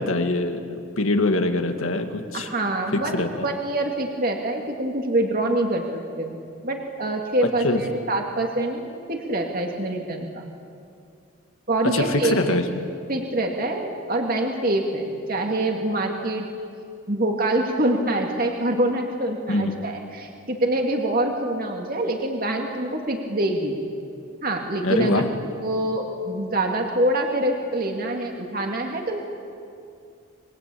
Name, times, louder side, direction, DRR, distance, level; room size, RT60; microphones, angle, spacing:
voice 1, 0.0-2.5 2.9-3.3 7.6-7.8 11.9-12.8 19.5-19.8 24.8-25.3, left 2 dB, 75° left, 5 dB, 2.2 m, -23 dB
voice 2, 2.3-6.4 6.6-10.5 11.7-12.3 13.1-16.5 17.1-23.8 24.4-25.3 25.6-29.2, right 1 dB, 40° right, 2 dB, 2.4 m, -25 dB
27.5 x 23.0 x 8.6 m, 2.5 s
head